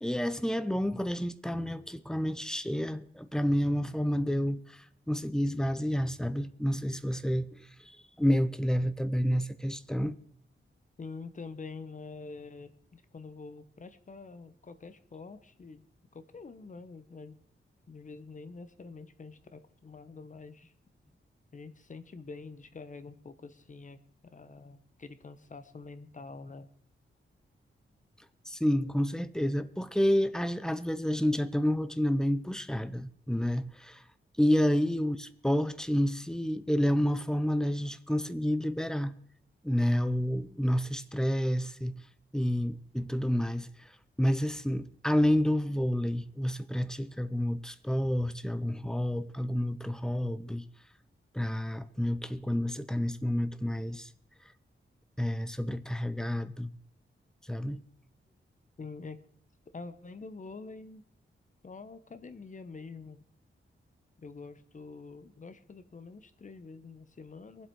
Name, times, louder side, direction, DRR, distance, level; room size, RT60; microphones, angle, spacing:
voice 1, 0.0-7.7 8.2-10.2 28.5-34.0 34.4-39.1 39.6-42.0 42.3-43.7 44.2-50.6 51.3-54.1 55.2-56.7 57.5-57.8, equal, 5° left, 0.6 m, -29 dB
voice 2, 11.0-15.8 16.1-17.4 17.9-20.7 21.5-26.7 34.6-35.0 58.8-59.2 59.7-61.0 61.6-63.2 64.2-67.7, left 4 dB, 40° left, 0.9 m, -46 dB
23.0 x 7.9 x 4.6 m
wide cardioid pair, 160°, 21 cm